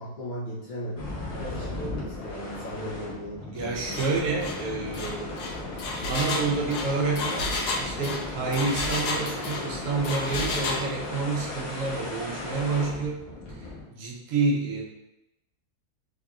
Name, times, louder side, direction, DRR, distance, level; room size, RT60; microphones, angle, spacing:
voice 1, 0.0-4.1, equal, 60° left, -7 dB, 0.5 m, -37 dB
sound 1, 1.0-13.8, left 2 dB, 45° left, 1.0 m, -36 dB
voice 2, 3.5-5.4 6.1-14.8, right 4 dB, 65° right, -1 dB, 0.9 m, -29 dB
Engine, 3.9-4.1 4.4-4.6 4.9-9.7 10.0-10.8, left 3 dB, 90° left, 1.2 m, -31 dB
3.8 x 3.2 x 2.3 m, 0.91 s
omnidirectional pair, 1.7 m